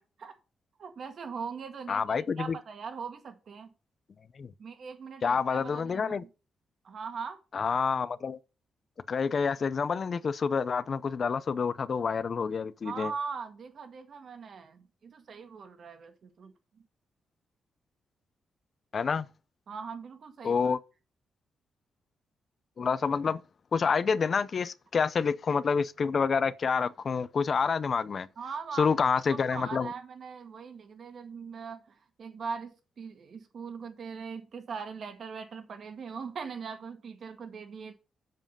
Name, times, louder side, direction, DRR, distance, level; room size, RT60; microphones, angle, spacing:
voice 1, 0.8-3.7 4.6-6.3 6.8-7.4 12.8-16.5 19.7-20.7 28.4-37.9, right 5 dB, 50° right, 1.8 m, -41 dB
voice 2, 1.9-2.6 4.4-4.5 5.2-6.2 7.5-8.4 9.1-13.1 18.9-19.3 20.4-20.8 22.8-23.4 23.7-28.3 28.8-29.9, left 5 dB, 40° left, 0.6 m, -28 dB
7.6 x 7.6 x 5.3 m
wide cardioid pair, 140°, 0 cm